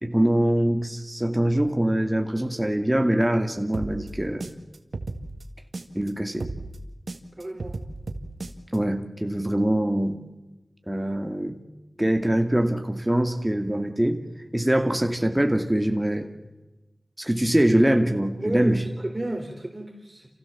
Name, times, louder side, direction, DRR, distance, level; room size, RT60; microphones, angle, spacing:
voice 1, 0.0-4.5 5.9-6.5 8.7-10.2 10.9-11.5 12.0-14.2 14.5-16.3 17.2-18.8, right 1 dB, 15° right, 4 dB, 2.3 m, -23 dB
sound 1, 3.7-6.1 6.4-8.8, right 2 dB, 75° right, 2.0 m, -35 dB
voice 2, 7.4-7.8 18.4-20.3, right 1 dB, 30° right, 2 dB, 3.8 m, -31 dB
28.5 x 16.0 x 7.3 m, 1.0 s
wide cardioid pair, 55°, 0 cm